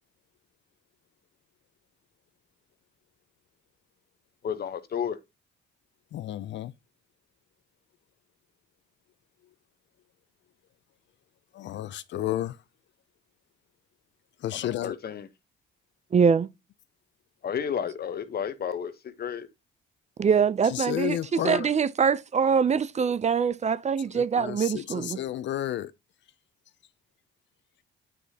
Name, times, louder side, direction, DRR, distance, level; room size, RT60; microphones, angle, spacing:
voice 1, 4.4-5.2 14.5-15.3 17.4-19.5, left 8 dB, 50° left, 1.0 m, -32 dB
voice 2, 6.1-6.7 11.5-12.6 14.4-15.0 20.7-21.7 24.1-25.9, left 12 dB, 65° left, 0.5 m, -31 dB
voice 3, 16.1-16.5 20.2-25.2, right 6 dB, 35° right, 0.5 m, -24 dB
9.0 x 4.9 x 2.8 m
cardioid pair, 90°, 20 cm